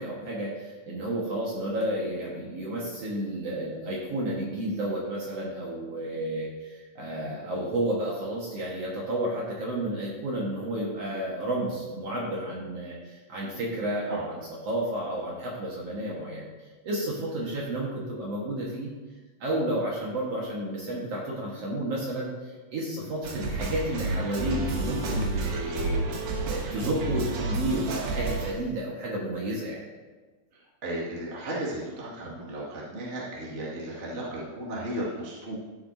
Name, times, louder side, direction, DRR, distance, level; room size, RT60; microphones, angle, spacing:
voice 1, 0.0-16.5 16.8-18.9 19.4-29.8, right 1 dB, 55° right, -4 dB, 2.4 m, -31 dB
sound 1, 23.2-28.5, right 2 dB, 75° right, 2.5 m, -30 dB
voice 2, 30.8-35.5, right 1 dB, 25° right, -6 dB, 1.9 m, -35 dB
13.5 x 8.1 x 2.7 m, 1.3 s
omnidirectional pair, 3.7 m